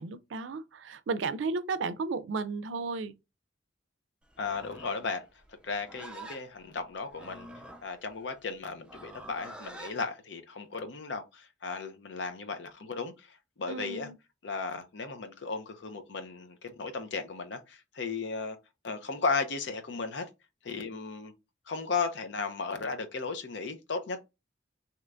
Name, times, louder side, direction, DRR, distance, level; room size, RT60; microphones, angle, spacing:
voice 1, 0.0-3.2 13.7-14.2, right 4 dB, 80° right, 0.4 m, -34 dB
Livestock farm animals working animals, 4.3-10.0, right 2 dB, 5° right, 0.4 m, -48 dB
voice 2, 4.4-5.3 5.6-7.5 7.8-14.1 14.4-18.6 18.8-20.3 20.6-21.3 21.7-24.2, left 4 dB, 70° left, 0.6 m, -35 dB
3.3 x 2.9 x 2.5 m
head